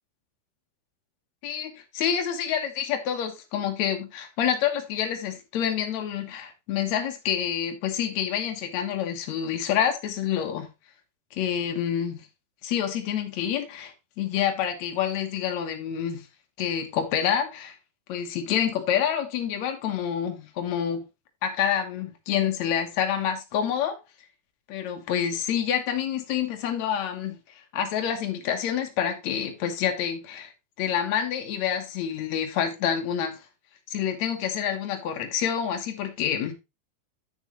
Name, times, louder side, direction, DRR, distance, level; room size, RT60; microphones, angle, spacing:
voice 1, 1.4-10.7 11.3-12.3 12.6-16.2 16.6-17.8 18.1-21.0 21.4-23.9 24.7-30.5 30.8-33.4 33.9-36.5, left 9 dB, 65° left, 1.9 m, -27 dB
9.6 x 6.3 x 3.1 m
omnidirectional pair, 4.7 m